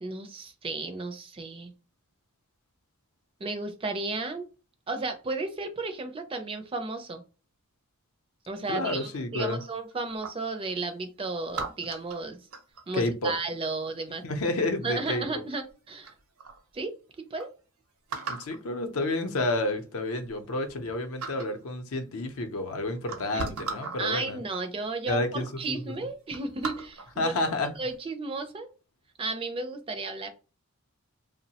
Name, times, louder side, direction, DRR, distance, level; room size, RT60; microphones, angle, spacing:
voice 1, 0.0-1.7 3.4-4.5 4.9-7.2 8.5-12.4 12.9-14.2 14.8-16.1 16.7-17.5 23.3-23.5 24.0-27.3 27.8-28.7 29.2-30.3, right 3 dB, 25° right, 0.4 m, -33 dB
voice 2, 8.7-9.6 12.9-13.3 14.2-15.2 18.2-24.4 25.1-25.6 27.2-27.7, left 2 dB, 70° left, 0.6 m, -30 dB
sound 1, 9.6-10.6 11.5-13.0 14.6-15.0 15.7-15.8 16.0-16.6 17.1-17.2 17.4-17.5 18.1-18.6 19.6-19.7 20.1-20.9 21.2-21.6 22.5-22.6 23.0-24.0 24.9-25.0 25.3-25.6 25.9-27.2 27.7-27.9, right 4 dB, 75° right, 0.6 m, -38 dB
3.0 x 2.0 x 2.8 m
head